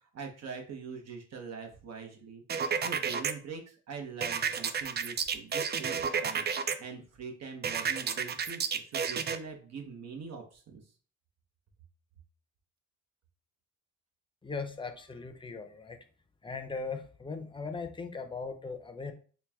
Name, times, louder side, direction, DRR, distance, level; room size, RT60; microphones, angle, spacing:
voice 1, 0.0-10.8, right 5 dB, 60° right, 2 dB, 1.1 m, -43 dB
sound 1, 2.5-3.3 4.2-6.7 7.6-9.4, right 6 dB, 35° right, 0.4 m, -31 dB
voice 2, 14.4-16.0 16.4-19.1, left 4 dB, 15° left, 6 dB, 0.6 m, -39 dB
4.4 x 2.3 x 3.5 m, 0.40 s
cardioid pair, 90°, 30 cm